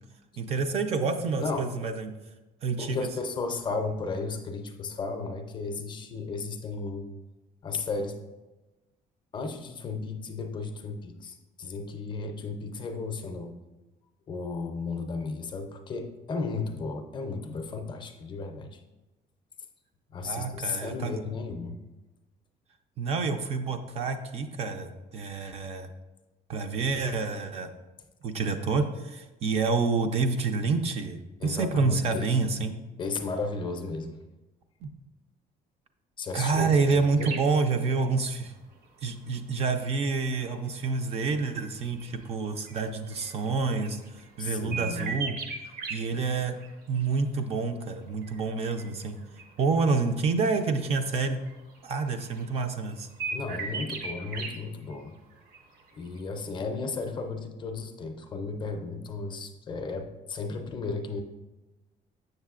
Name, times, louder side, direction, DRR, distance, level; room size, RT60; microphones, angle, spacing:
voice 1, 0.3-2.1 2.6-3.0 20.2-21.2 23.0-25.9 26.5-27.7 28.2-32.7 34.8-34.9 36.3-38.5 39.0-45.4 45.9-46.6 46.9-49.2 49.6-51.4 51.8-53.1, right 4 dB, 40° right, 7 dB, 0.4 m, -28 dB
voice 2, 2.8-7.1 7.6-8.2 9.3-13.6 14.3-18.8 20.1-21.8 31.4-32.3 33.0-34.2 36.2-37.4 44.4-45.1 53.3-55.2 55.9-61.2, left 4 dB, 30° left, 5 dB, 0.5 m, -34 dB
sound 1, 37.2-37.5 38.6-38.7 39.5-44.3 44.7-46.0 46.2-46.7 47.0-47.4 48.2-50.0 50.3-50.9 51.1-51.2 51.5-52.6 52.9-54.5 54.9-55.0 55.3-55.8 56.1-56.2, right 4 dB, 65° right, 0.8 m, -38 dB
7.3 x 6.5 x 2.4 m, 1.1 s
cardioid pair, 175°, 16 cm